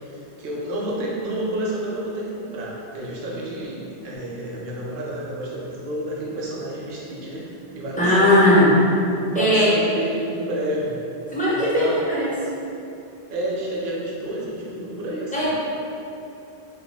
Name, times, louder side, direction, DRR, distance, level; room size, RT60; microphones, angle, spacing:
voice 1, 0.4-8.6 9.3-11.0 11.5-12.0 13.3-15.4, right 1 dB, 60° right, -4 dB, 0.7 m, -29 dB
voice 2, 8.0-8.7 9.3-9.7 11.3-12.3 15.3-15.5, left 1 dB, 10° left, -9 dB, 0.4 m, -18 dB
2.2 x 2.2 x 3.4 m, 2.7 s
omnidirectional pair, 1.1 m